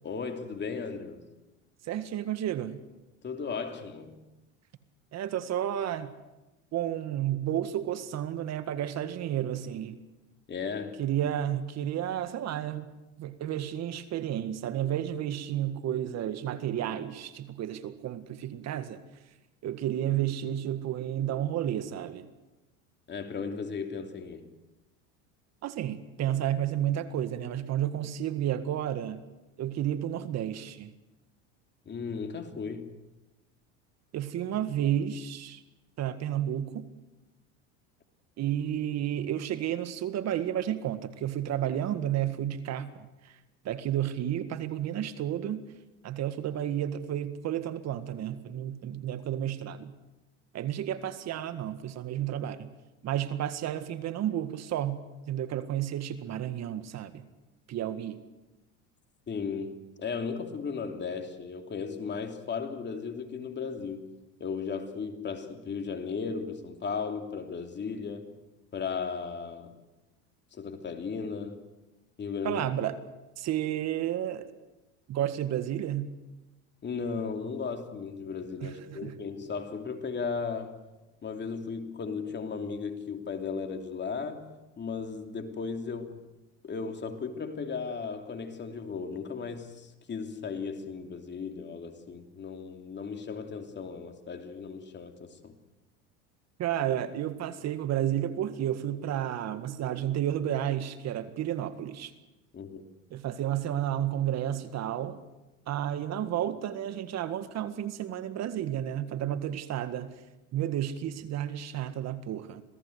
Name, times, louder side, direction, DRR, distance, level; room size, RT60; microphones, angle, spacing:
voice 1, 0.0-1.3 3.2-4.2 10.5-11.0 23.1-24.5 31.8-32.9 59.3-68.4 68.7-69.7 70.5-71.7 72.2-72.6 76.8-80.8 81.2-84.5 84.8-86.3 86.6-95.5 102.5-102.8, left 5 dB, 30° left, 3.0 m, -36 dB
voice 2, 1.8-2.8 5.1-6.1 6.7-10.0 11.0-12.9 13.2-19.0 19.6-22.3 25.6-29.2 29.6-30.9 34.1-35.6 36.0-36.9 38.4-43.3 43.7-45.6 46.0-49.9 50.5-52.7 53.0-55.0 55.3-57.2 57.7-58.2 72.4-73.0 73.4-74.5 75.1-76.1 78.6-79.1 96.6-102.1 103.1-105.2 105.7-110.1 110.5-112.6, right 11 dB, 45° right, 1.8 m, -31 dB
27.0 x 18.0 x 8.1 m
supercardioid pair, 100°, 36 cm